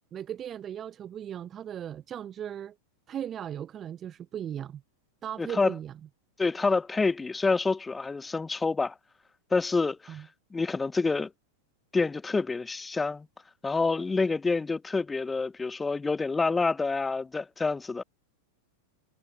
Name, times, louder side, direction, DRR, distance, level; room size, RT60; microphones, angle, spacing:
voice 1, 0.1-2.8 3.1-4.8 5.2-5.9 10.1-10.3, right 10 dB, 25° right, 5.5 m, -37 dB
voice 2, 5.4-5.7 6.4-8.9 9.5-10.2 10.5-11.3 11.9-13.3 13.6-18.0, left 4 dB, 10° left, 0.7 m, -27 dB
figure-of-eight pair, 90°, 0 cm